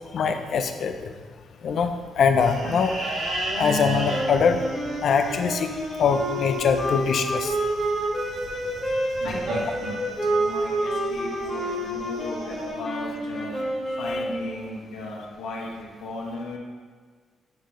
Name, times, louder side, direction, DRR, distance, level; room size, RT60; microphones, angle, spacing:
voice 1, 0.1-1.1 1.6-3.0 3.6-4.6 5.0-5.7 6.0-7.6, left 6 dB, 50° left, 7 dB, 0.4 m, -23 dB
sound 1, 2.4-12.7, right 2 dB, 85° right, 1.7 m, -35 dB
sound 2, 4.1-14.5, right 1 dB, ahead, 1.8 m, -29 dB
voice 2, 9.2-13.6 14.0-16.6, left 2 dB, 85° left, -3 dB, 1.3 m, -36 dB
8.6 x 4.0 x 3.1 m, 1.5 s
cardioid pair, 175°, 0 cm